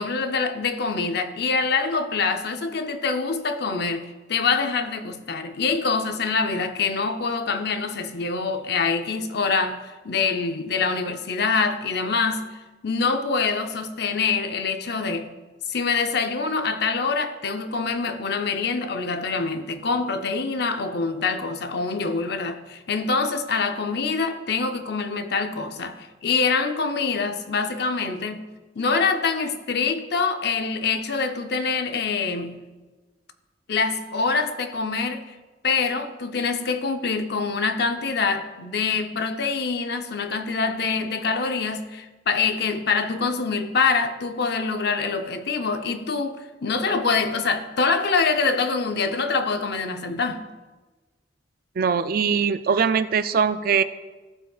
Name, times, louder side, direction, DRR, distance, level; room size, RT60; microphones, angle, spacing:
voice 1, 0.0-12.5 12.8-15.3 15.7-28.5 28.8-32.6 33.7-35.3 35.6-50.5, left 4 dB, 60° left, 0.6 m, -25 dB
voice 2, 51.8-53.8, right 6 dB, 50° right, 0.3 m, -21 dB
15.0 x 8.0 x 2.4 m
head